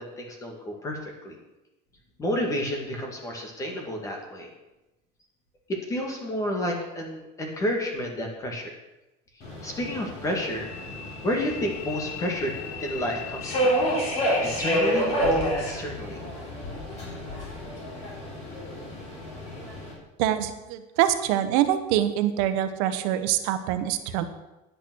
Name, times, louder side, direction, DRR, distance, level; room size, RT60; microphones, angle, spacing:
voice 1, 0.0-1.3 2.2-4.5 5.9-8.7 9.6-10.7 11.2-12.5 12.8-13.8 14.4-16.2, equal, 20° left, 2 dB, 1.9 m, -30 dB
Subway metro underground, 9.4-19.9, equal, 40° left, 4.0 m, -29 dB
voice 2, 20.2-24.3, right 11 dB, 75° right, 10 dB, 1.1 m, -25 dB
10.0 x 8.9 x 6.2 m, 1.0 s
cardioid pair, 180°, 18 cm